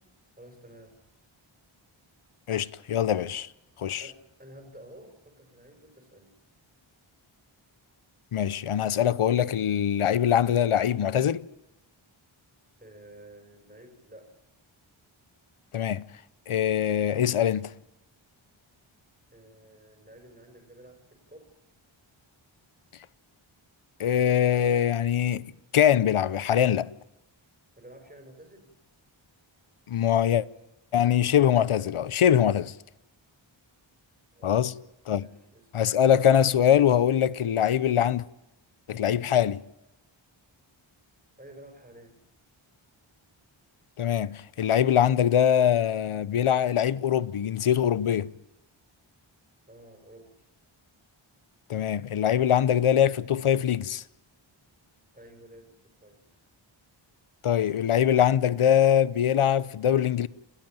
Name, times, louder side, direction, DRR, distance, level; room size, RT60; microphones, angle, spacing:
voice 1, 0.4-1.0 4.0-6.3 12.8-14.3 19.3-21.5 27.8-28.7 34.3-34.9 35.1-35.7 41.4-42.2 49.7-50.4 55.1-56.2, right 1 dB, 15° right, 5.2 m, -51 dB
voice 2, 2.5-3.5 3.8-4.0 8.3-11.5 15.7-16.1 16.5-17.7 24.0-26.9 29.9-30.5 30.9-32.7 34.4-34.7 35.1-35.3 35.7-38.2 38.9-39.6 44.0-48.3 51.7-54.0 57.4-60.3, left 9 dB, 85° left, 0.8 m, -23 dB
29.0 x 13.5 x 9.0 m
wide cardioid pair, 90°, 49 cm